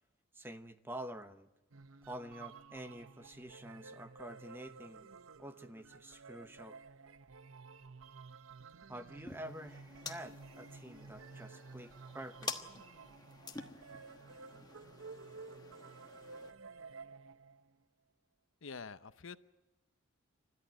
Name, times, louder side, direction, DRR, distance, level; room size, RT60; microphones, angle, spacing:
voice 1, 0.3-1.5 2.1-5.1 5.4-6.8 8.9-12.8, right 1 dB, 10° right, 9 dB, 0.9 m, -48 dB
sound 1, 1.7-17.8, right 4 dB, 85° right, 0.8 m, -53 dB
sound 2, 9.2-16.5, left 4 dB, 20° left, 1.2 m, -49 dB
voice 2, 18.6-19.4, left 5 dB, 75° left, 12 dB, 0.8 m, -46 dB
30.0 x 14.0 x 9.1 m, 1.0 s
head